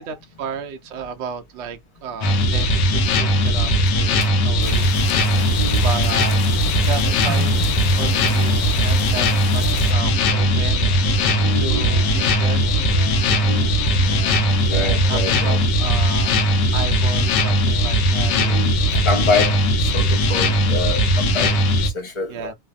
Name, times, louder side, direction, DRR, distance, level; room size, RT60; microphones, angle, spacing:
voice 1, 0.0-5.4 5.8-6.4 6.8-9.3 9.5-10.8 11.1-11.3 11.5-12.7 14.7-16.4 16.7-18.3 18.9-19.0 22.3-22.5, right 6 dB, 70° right, 0.6 m, -33 dB
sound 1, 2.2-21.9, equal, 85° left, 1.3 m, -19 dB
sound 2, 4.6-9.9, left 7 dB, 60° left, 0.9 m, -34 dB
sound 3, 6.7-15.7, left 1 dB, 45° left, 1.3 m, -38 dB
voice 2, 11.4-11.8 13.4-13.7 14.7-15.6 18.3-18.8 19.0-21.5 21.8-22.5, left 2 dB, 20° left, 0.8 m, -26 dB
3.2 x 2.0 x 2.2 m
omnidirectional pair, 1.8 m